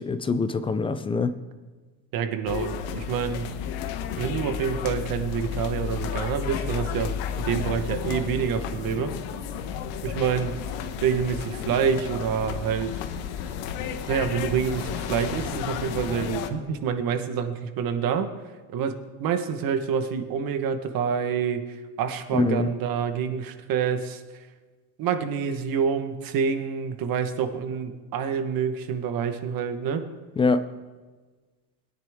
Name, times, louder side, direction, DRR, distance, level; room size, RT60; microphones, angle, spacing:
voice 1, 0.0-1.4 22.3-22.7 30.4-30.6, left 4 dB, 15° left, 11 dB, 0.4 m, -24 dB
voice 2, 2.1-3.5 4.2-9.1 10.0-10.5 11.0-12.9 14.1-18.3 18.7-21.6 22.0-24.2 25.0-30.0, right 7 dB, 55° right, 8 dB, 1.2 m, -27 dB
sound 1, 2.5-16.5, left 8 dB, 80° left, 1.2 m, -32 dB
21.0 x 10.0 x 3.6 m, 1.4 s
cardioid pair, 145°, 43 cm